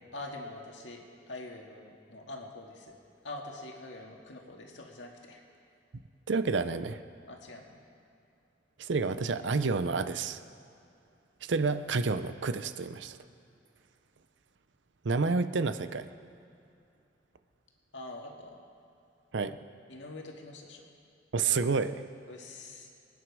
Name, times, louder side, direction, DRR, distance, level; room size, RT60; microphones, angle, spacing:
voice 1, 0.1-2.9 3.2-5.4 7.3-7.8 17.9-18.6 19.9-20.9 22.3-22.9, left 2 dB, 75° left, 1 dB, 1.9 m, -44 dB
voice 2, 6.3-7.0 8.8-10.4 11.5-13.2 15.0-16.1 19.3-19.6 21.3-22.0, right 4 dB, 70° right, 11 dB, 0.6 m, -29 dB
24.5 x 9.4 x 4.8 m, 2.6 s
head